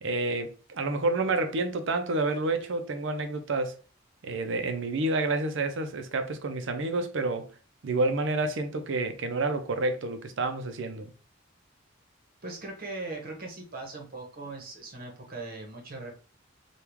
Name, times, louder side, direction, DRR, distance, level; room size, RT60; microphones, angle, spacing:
voice 1, 0.0-3.8 4.2-7.5 7.8-11.1, right 2 dB, 65° right, 0.5 m, -29 dB
voice 2, 12.4-16.1, right 2 dB, 45° right, 1.0 m, -39 dB
3.5 x 2.3 x 3.0 m
head